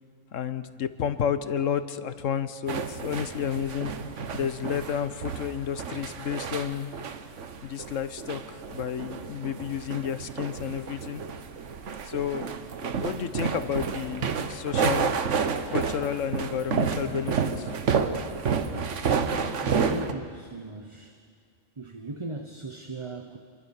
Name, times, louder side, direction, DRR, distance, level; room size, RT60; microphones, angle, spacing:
voice 1, 0.3-3.9 4.3-6.9 7.6-11.3 12.0-12.5 12.8-15.1 15.7-17.7, left 8 dB, 75° left, 12 dB, 1.4 m, -31 dB
sound 1, 2.7-20.1, right 6 dB, 70° right, 1.4 m, -30 dB
voice 2, 19.6-21.2 21.8-23.4, right 3 dB, 25° right, 6 dB, 1.0 m, -38 dB
28.0 x 24.0 x 7.2 m, 2.1 s
omnidirectional pair, 1.3 m